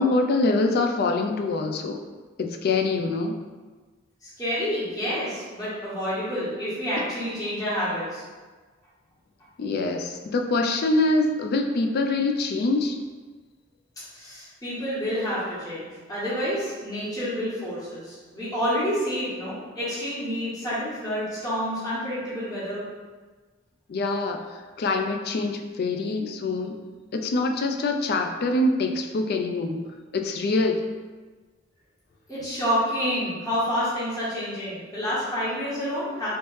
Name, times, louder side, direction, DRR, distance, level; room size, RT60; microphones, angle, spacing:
voice 1, 0.0-2.0 2.4-3.4 9.6-13.0 23.9-24.4 24.8-26.7 27.1-29.8 30.1-30.8, left 2 dB, 55° left, 4 dB, 0.3 m, -24 dB
voice 2, 4.2-8.2 14.1-22.8 32.3-36.3, equal, 20° left, -11 dB, 1.2 m, -28 dB
3.1 x 3.0 x 3.1 m, 1.4 s
head